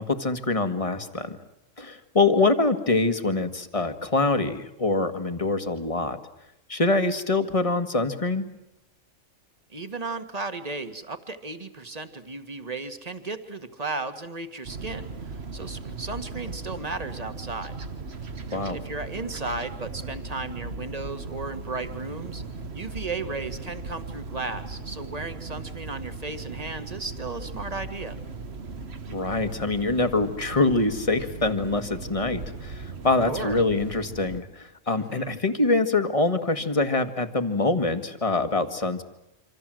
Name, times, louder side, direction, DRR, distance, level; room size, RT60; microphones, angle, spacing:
voice 1, 0.0-1.4 1.8-6.2 6.7-8.4 18.5-18.8 29.1-39.0, left 3 dB, 25° left, 8 dB, 1.8 m, -24 dB
voice 2, 9.7-17.8 18.5-22.4 22.7-28.2 33.2-33.6 35.0-35.4, right 3 dB, 30° right, 8 dB, 2.0 m, -35 dB
sound 1, 14.7-34.4, right 4 dB, 55° right, 1.7 m, -38 dB
27.0 x 26.0 x 7.8 m, 0.89 s
omnidirectional pair, 1.3 m